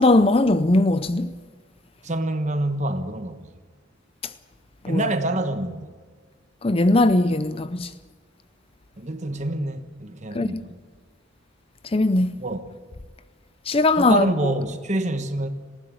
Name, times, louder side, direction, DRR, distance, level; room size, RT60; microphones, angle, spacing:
voice 1, 0.0-1.3 4.8-5.1 6.6-7.9 10.3-10.5 11.9-12.3 13.7-14.5, left 2 dB, 25° left, 0.5 m, -19 dB
voice 2, 2.0-3.5 4.9-5.9 9.0-10.8 12.4-12.6 14.0-15.5, right 1 dB, 35° right, 1.2 m, -26 dB
19.0 x 15.0 x 9.4 m
head